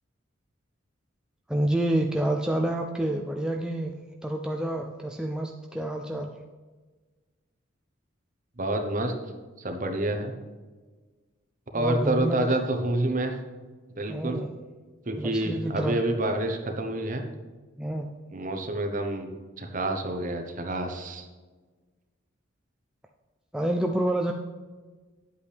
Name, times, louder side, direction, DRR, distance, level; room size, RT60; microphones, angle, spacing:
voice 1, 1.5-3.9 4.2-6.3 11.8-12.5 14.1-14.5 15.2-16.0 17.8-18.1 23.5-24.3, right 1 dB, 5° right, 2 dB, 0.3 m, -28 dB
voice 2, 8.6-9.1 9.6-10.3 11.7-13.4 13.9-14.4 15.0-17.2 18.3-19.3 19.6-21.3, right 1 dB, 40° right, 5 dB, 1.0 m, -28 dB
9.8 x 8.0 x 3.4 m, 1.3 s
head